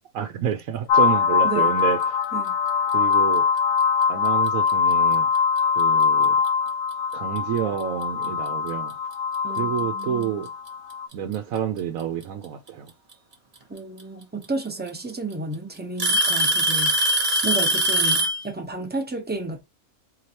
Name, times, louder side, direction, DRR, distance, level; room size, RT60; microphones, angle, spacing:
voice 1, 0.1-2.2 2.9-3.5 4.1-5.3 5.8-6.3 7.1-8.9 9.5-10.5 11.1-12.9, right 9 dB, 75° right, 1.0 m, -28 dB
sound 1, 0.9-11.1, left 6 dB, 75° left, 1.0 m, -22 dB
voice 2, 1.4-1.8 2.3-2.6 9.4-10.4 13.7-17.0 17.4-19.6, right 3 dB, 10° right, 0.6 m, -32 dB
Alarm / Tick-tock, 4.5-4.7 5.6-5.7 6.5-6.6 8.2-8.3 9.6-9.7 10.9-11.4 13.1-13.2 14.4-14.5 14.9-15.3 16.0-18.4, right 1 dB, 35° right, 1.1 m, -21 dB
4.3 x 3.1 x 2.9 m
omnidirectional pair, 1.5 m